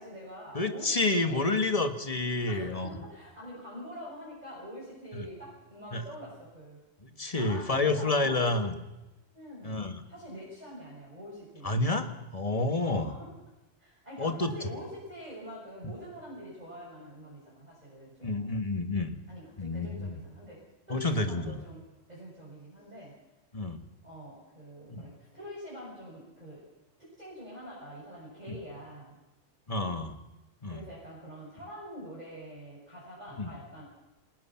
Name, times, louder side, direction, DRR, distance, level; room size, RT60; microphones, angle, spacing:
voice 1, 0.0-1.5 2.5-6.8 7.3-8.6 9.3-9.8 10.0-12.2 12.8-13.3 13.8-18.6 19.3-23.2 24.0-26.7 27.0-29.2 30.7-33.9, equal, 30° right, -5 dB, 7.2 m, -45 dB
voice 2, 0.5-2.9 5.1-5.3 5.9-6.0 7.1-8.7 9.6-10.0 11.6-12.1 12.3-13.1 14.2-14.5 18.2-19.2 19.6-20.2 20.9-21.6 23.5-23.8 24.9-25.1 28.5-28.6 29.7-30.2 30.6-30.8 33.4-33.5, left 2 dB, 30° left, 6 dB, 1.7 m, -29 dB
28.0 x 20.5 x 5.9 m, 1.0 s
omnidirectional pair, 1.3 m